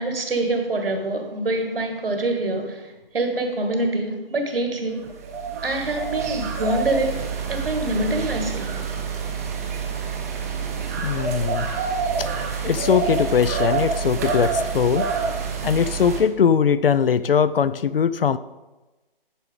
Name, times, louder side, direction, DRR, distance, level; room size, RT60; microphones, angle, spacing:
voice 1, 0.0-5.1 5.6-8.9, right 2 dB, 70° right, 1.7 m, -25 dB
sound 1, 5.0-16.2, right 5 dB, 15° right, 0.6 m, -27 dB
voice 2, 11.0-11.7 12.2-12.3 12.6-15.1 15.6-18.4, left 7 dB, 75° left, 0.5 m, -20 dB
10.0 x 4.7 x 5.2 m
figure-of-eight pair, 150°, 29 cm